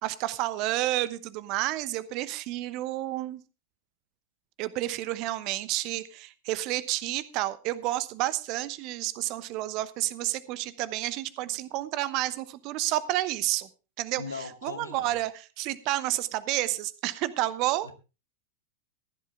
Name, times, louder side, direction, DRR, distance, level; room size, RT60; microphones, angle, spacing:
voice 1, 0.0-3.4 4.6-13.7 14.0-17.9, right 16 dB, 40° right, 16 dB, 0.9 m, -30 dB
voice 2, 14.2-15.2 17.8-17.9, left 4 dB, 75° left, 9 dB, 1.6 m, -39 dB
15.5 x 11.0 x 3.6 m, 0.30 s
figure-of-eight pair, 90°, 0 cm